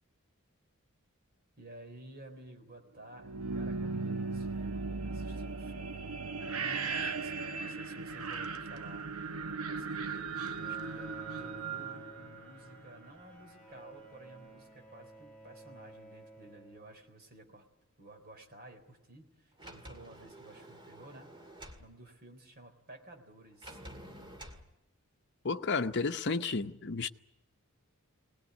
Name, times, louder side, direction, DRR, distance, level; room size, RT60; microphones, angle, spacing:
voice 1, 1.6-6.1 6.5-17.7 18.0-23.8, right 2 dB, 45° right, 3.7 m, -54 dB
sound 1, 3.1-13.0, right 4 dB, 80° right, 1.0 m, -37 dB
Bowed string instrument, 10.6-17.4, right 2 dB, 5° left, 4.6 m, -53 dB
Sliding door, 19.6-21.9 23.6-24.6, equal, 20° right, 2.1 m, -49 dB
voice 2, 25.4-27.1, left 4 dB, 55° left, 0.8 m, -32 dB
22.0 x 19.0 x 9.4 m
head